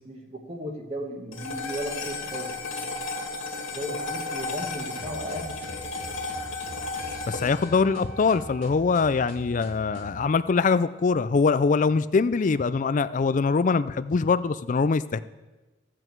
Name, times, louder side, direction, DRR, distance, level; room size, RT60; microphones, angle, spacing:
voice 1, 0.0-2.9 3.7-5.8, equal, 35° right, 1 dB, 1.2 m, -36 dB
sound 1, 1.3-9.8, left 3 dB, 85° left, 2.0 m, -35 dB
sound 2, 5.0-10.2, right 1 dB, 85° right, 1.8 m, -43 dB
voice 2, 7.3-15.2, left 4 dB, 40° left, 15 dB, 0.4 m, -23 dB
14.5 x 7.8 x 4.6 m, 1.1 s
head